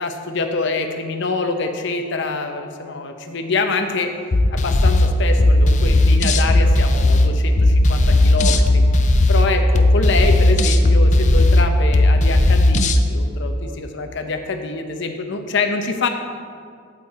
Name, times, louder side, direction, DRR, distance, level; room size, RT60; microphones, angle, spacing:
voice 1, 0.0-4.1 4.5-8.8 9.3-16.1, left 3 dB, 60° left, 5 dB, 0.8 m, -25 dB
sound 1, 4.3-13.0, left 1 dB, 35° left, 0.5 m, -15 dB
8.5 x 8.4 x 4.2 m, 2.2 s
head